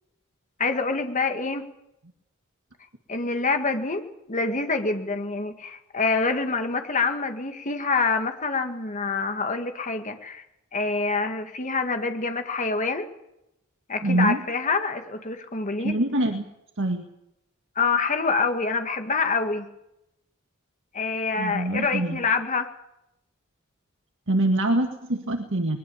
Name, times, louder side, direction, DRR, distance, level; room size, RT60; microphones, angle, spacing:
voice 1, 0.6-1.6 3.1-10.4 10.7-13.1 13.9-15.9 17.8-19.7 20.9-22.7, left 4 dB, 35° left, 6 dB, 2.1 m, -26 dB
voice 2, 14.0-14.4 15.8-16.4 16.8-17.1 21.4-22.2 24.3-25.8, right 1 dB, 65° right, 4 dB, 1.9 m, -24 dB
21.5 x 21.5 x 7.2 m, 0.85 s
head